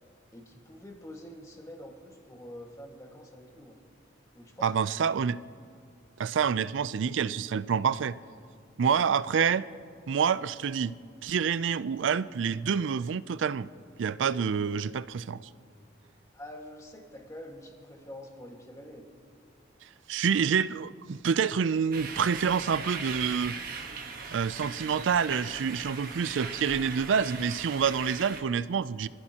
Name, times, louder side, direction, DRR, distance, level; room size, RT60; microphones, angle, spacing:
voice 1, 0.3-3.8 4.3-4.9 16.3-19.1, left 1 dB, 15° left, 1 dB, 1.7 m, -46 dB
voice 2, 4.6-5.4 6.2-8.1 8.8-9.7 10.1-10.9 11.2-13.7 14.0-15.4 20.1-23.6 24.3-29.1, right 6 dB, 85° right, 17 dB, 0.4 m, -27 dB
sound 1, 21.9-28.4, right 5 dB, 50° right, 1.3 m, -39 dB
26.5 x 15.5 x 2.9 m, 2.3 s
head